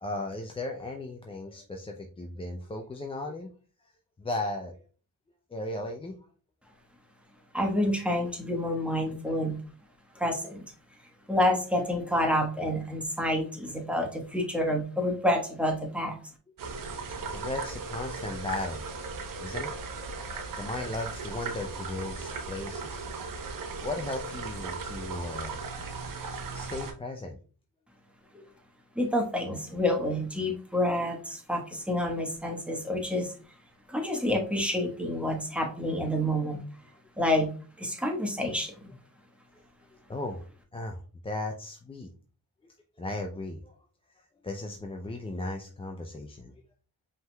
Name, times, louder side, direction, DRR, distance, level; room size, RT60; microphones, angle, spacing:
voice 1, 0.0-3.5 4.2-4.8 5.5-6.2 17.1-18.8 19.4-23.0 23.8-25.7 26.5-27.4 40.1-40.5 40.7-42.1 42.6-43.8 44.1-46.6, left 2 dB, 15° left, 2 dB, 0.5 m, -36 dB
voice 2, 7.5-9.6 10.1-10.6 11.3-16.2 28.3-28.4 28.9-33.3 33.9-36.6 37.2-37.5 37.8-38.9, left 1 dB, 5° right, 2 dB, 1.2 m, -28 dB
sound 1, 16.6-26.9, right 4 dB, 60° right, 1.0 m, -37 dB
5.4 x 3.7 x 2.2 m, 0.39 s
cardioid pair, 100°, 36 cm